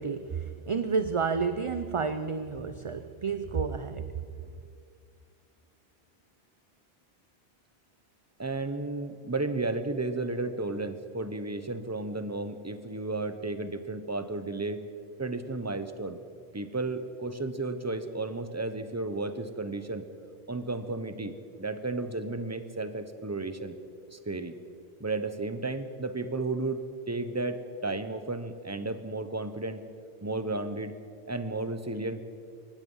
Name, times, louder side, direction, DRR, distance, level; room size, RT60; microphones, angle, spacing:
voice 1, 0.0-4.2, right 5 dB, 35° right, 10 dB, 0.6 m, -30 dB
voice 2, 8.4-14.9 15.2-16.2 16.5-20.1 20.5-23.8 24.1-24.6 25.0-29.9 30.2-31.0 31.3-32.2, right 2 dB, 15° right, 10 dB, 1.0 m, -33 dB
23.5 x 19.5 x 5.6 m, 2.4 s
omnidirectional pair, 1.1 m